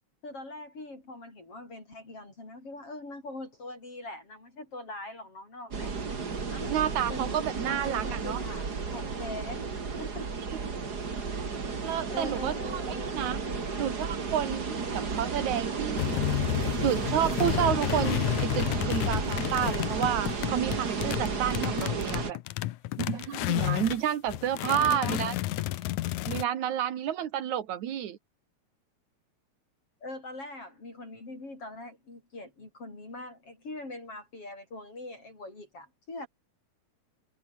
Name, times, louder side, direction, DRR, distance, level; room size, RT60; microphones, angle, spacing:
voice 1, 0.2-5.9 6.5-6.7 7.1-9.6 10.0-10.3 12.1-13.9 24.7-25.2 30.0-36.3, left 2 dB, 50° left, 9.0 m, -42 dB
sound 1, 5.7-22.3, right 5 dB, 35° right, 2.9 m, -33 dB
voice 2, 6.7-8.4 11.8-13.4 13.8-16.2 16.8-22.4 23.0-25.3 26.3-28.2, right 10 dB, 80° right, 3.0 m, -30 dB
sound 2, 16.0-24.0 24.3-26.4, left 16 dB, 85° left, 2.3 m, -31 dB
omnidirectional pair, 3.3 m